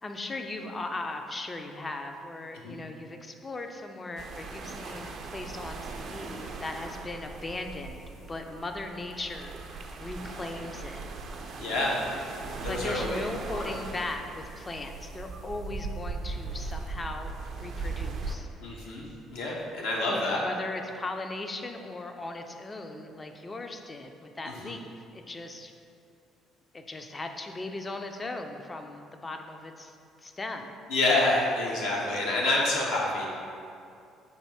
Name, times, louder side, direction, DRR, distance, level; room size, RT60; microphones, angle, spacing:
voice 1, 0.0-8.0 8.3-9.5 10.0-11.0 12.7-18.5 20.1-25.7 26.7-29.9 30.2-30.8, left 2 dB, 30° left, 5 dB, 0.4 m, -38 dB
sound 1, 4.2-18.4, right 3 dB, 55° right, 0.4 m, -39 dB
voice 2, 11.6-12.0 12.6-13.2 13.5-13.7 18.6-19.0 19.3-20.4 24.4-24.8 30.9-33.3, left 2 dB, 70° left, -3 dB, 0.8 m, -28 dB
4.2 x 2.6 x 4.8 m, 2.5 s
hypercardioid pair, 55°, 0 cm